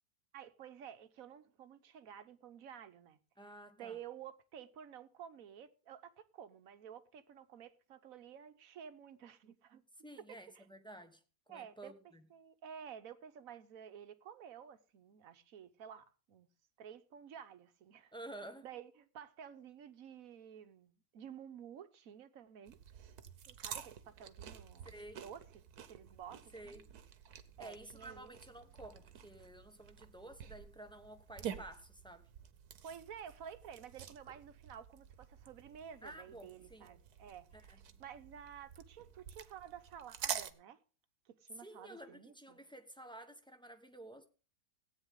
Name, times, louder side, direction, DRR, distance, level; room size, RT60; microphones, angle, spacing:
voice 1, 0.3-3.2 3.8-9.8 10.3-10.6 11.5-11.9 12.3-16.5 16.8-18.1 18.6-22.8 23.5-25.6 25.9-26.8 27.6-28.3 32.8-40.8 41.2-42.6, right 8 dB, 65° right, 1.3 m, -52 dB
voice 2, 3.4-4.0 10.0-12.3 18.1-18.7 24.8-25.2 26.5-26.9 27.6-32.3 36.0-36.9 37.5-37.8 41.6-44.3, right 1 dB, 5° left, 1.0 m, -52 dB
sound 1, 22.7-40.5, right 9 dB, 85° right, 1.4 m, -49 dB
16.0 x 9.0 x 3.7 m
omnidirectional pair, 1.6 m